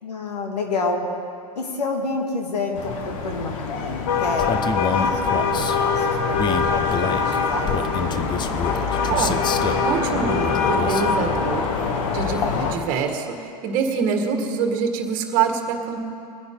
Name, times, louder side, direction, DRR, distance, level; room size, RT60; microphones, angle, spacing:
voice 1, 0.0-1.0 1.6-8.5, left 3 dB, 80° left, 2 dB, 2.3 m, -29 dB
sound 1, 2.8-12.7, left 5 dB, 55° left, 1.6 m, -23 dB
Male speech man speaking, 4.4-5.8 6.3-9.9 10.4-11.1, left 7 dB, 20° left, 0.7 m, -27 dB
voice 2, 9.1-9.4 9.8-11.6 12.1-16.1, right 6 dB, 45° right, 4 dB, 1.9 m, -25 dB
22.5 x 9.7 x 3.9 m, 2.6 s
hypercardioid pair, 100°, 20 cm